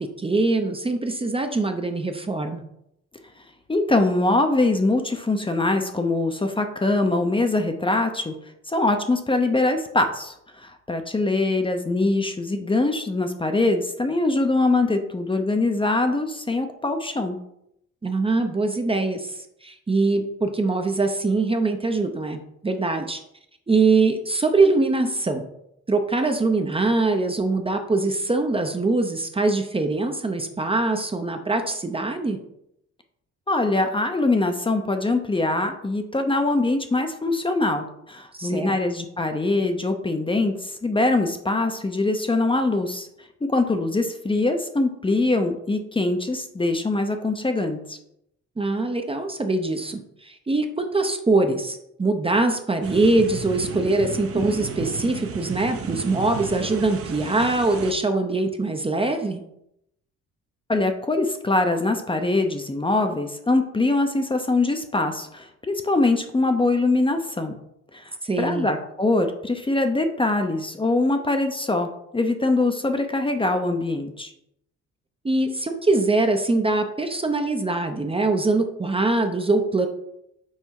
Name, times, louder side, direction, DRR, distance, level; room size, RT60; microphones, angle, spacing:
voice 1, 0.0-2.6 18.0-23.2 23.7-25.4 25.9-32.4 38.3-38.7 48.6-59.4 68.2-68.7 75.2-79.9, right 3 dB, 20° right, 6 dB, 0.7 m, -23 dB
voice 2, 3.7-8.3 8.7-17.4 33.5-43.1 43.5-48.0 60.7-67.6 67.9-74.3, left 2 dB, 15° left, 6 dB, 0.7 m, -23 dB
sound 1, 52.8-57.9, right 6 dB, 50° right, 0.8 m, -33 dB
5.6 x 3.9 x 4.7 m, 0.78 s
cardioid pair, 90°, 30 cm